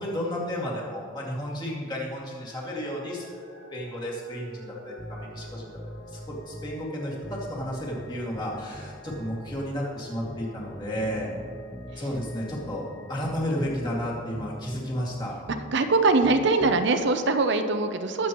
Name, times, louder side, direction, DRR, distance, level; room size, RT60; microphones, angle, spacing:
voice 1, 0.0-3.2 3.7-5.8 6.1-11.3 12.0-15.3, equal, 20° left, -4 dB, 2.3 m, -32 dB
sound 1, 2.4-14.3 14.9-15.0, equal, 80° left, 1.3 m, -49 dB
sound 2, 5.0-6.8 7.2-9.8 10.2-12.8 13.2-15.8 16.2-16.9, equal, 5° right, 0.4 m, -42 dB
voice 2, 15.7-18.3, right 3 dB, 60° right, 7 dB, 0.7 m, -22 dB
20.0 x 7.6 x 3.1 m, 2.3 s
head